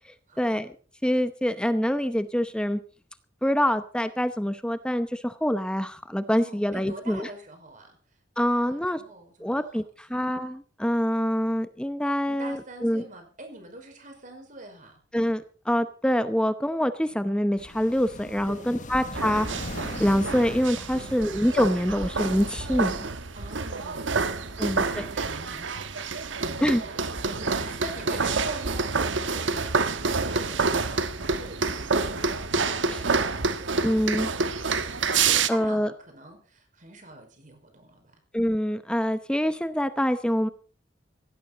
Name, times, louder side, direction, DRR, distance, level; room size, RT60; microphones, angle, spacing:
voice 1, 0.4-0.7 1.0-2.8 3.4-7.3 8.4-9.0 9.4-13.0 15.1-19.6 20.0-23.1 24.6-25.0 26.6-26.8 32.9-33.0 33.8-34.3 35.5-35.9 38.3-40.5, equal, 5° left, 11 dB, 0.8 m, -25 dB
voice 2, 6.4-8.0 8.4-9.7 12.3-15.0 18.5-19.0 20.9-21.3 23.3-26.9 27.2-29.9 30.2-38.1, right 2 dB, 45° right, 4 dB, 5.3 m, -45 dB
sound 1, 17.6-22.8, left 2 dB, 40° left, 1.3 m, -40 dB
sound 2, 19.1-35.5, right 4 dB, 90° right, 1.3 m, -28 dB
17.0 x 16.0 x 4.1 m, 0.39 s
head